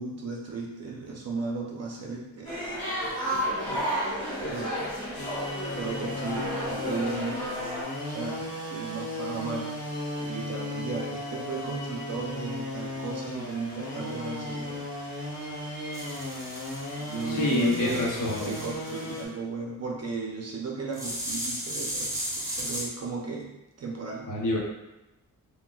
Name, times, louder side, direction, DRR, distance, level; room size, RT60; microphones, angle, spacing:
voice 1, 0.0-3.9 4.4-5.0 5.7-7.5 8.0-9.7 10.2-14.8 17.0-18.1 18.5-23.5 23.8-24.3, right 3 dB, 50° right, -2 dB, 0.6 m, -35 dB
sound 1, 2.4-7.8, equal, 20° left, 1.3 m, -32 dB
sound 2, 5.2-19.3, left 1 dB, 90° left, 0.9 m, -36 dB
sound 3, 15.9-19.2 20.9-22.9, equal, 10° right, 0.6 m, -35 dB
voice 2, 17.3-18.6 24.3-24.6, left 2 dB, 60° left, -3 dB, 0.8 m, -27 dB
4.0 x 2.2 x 2.3 m, 0.96 s
wide cardioid pair, 170°, 34 cm